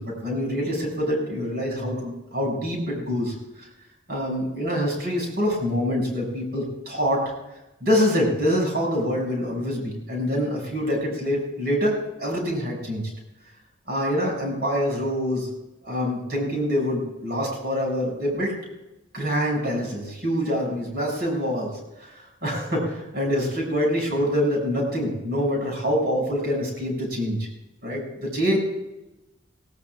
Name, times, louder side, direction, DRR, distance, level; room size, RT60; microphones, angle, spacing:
voice 1, 0.0-3.7 4.1-7.2 7.8-13.0 13.9-15.5 15.8-18.5 19.1-21.7 22.0-22.1 22.4-27.5 27.8-28.6, equal, 55° right, -1 dB, 6.4 m, -25 dB
19.5 x 17.0 x 2.4 m, 0.97 s
head